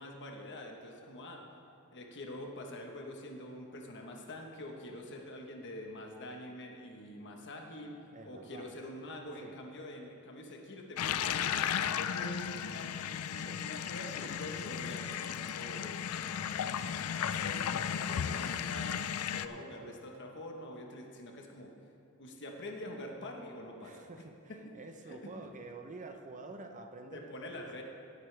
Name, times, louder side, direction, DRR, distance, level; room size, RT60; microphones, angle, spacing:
voice 1, 0.0-1.4 1.9-8.0 8.2-11.4 11.8-19.0 19.3-21.7 22.2-24.2 25.1-25.3 27.1-27.8, left 1 dB, 55° left, 2 dB, 1.3 m, -46 dB
voice 2, 8.1-8.7 9.4-9.6 13.4-13.6 19.8-20.0 23.8-27.7, right 3 dB, 35° right, 5 dB, 0.8 m, -49 dB
sound 1, 11.0-19.5, left 8 dB, 75° left, 0.4 m, -35 dB
17.5 x 8.2 x 3.4 m, 2.7 s
head